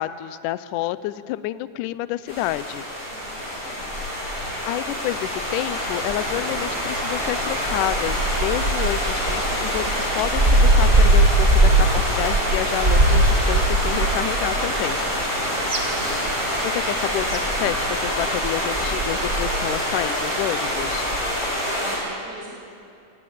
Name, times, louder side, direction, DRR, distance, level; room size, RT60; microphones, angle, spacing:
voice 1, 0.0-2.8 4.7-15.0 16.3-21.1, left 15 dB, 80° left, 16 dB, 1.9 m, -29 dB
sound 1, 2.3-22.0, equal, 10° left, 6.9 m, -26 dB
voice 2, 3.6-4.0 15.3-15.7 21.6-22.6, right 1 dB, 65° right, -4 dB, 8.2 m, -39 dB
sound 2, 5.8-21.3, right 2 dB, 30° right, 1.5 m, -22 dB
sound 3, 12.3-19.3, right 3 dB, 45° right, 3.0 m, -38 dB
21.0 x 18.0 x 8.7 m, 2.5 s
omnidirectional pair, 4.2 m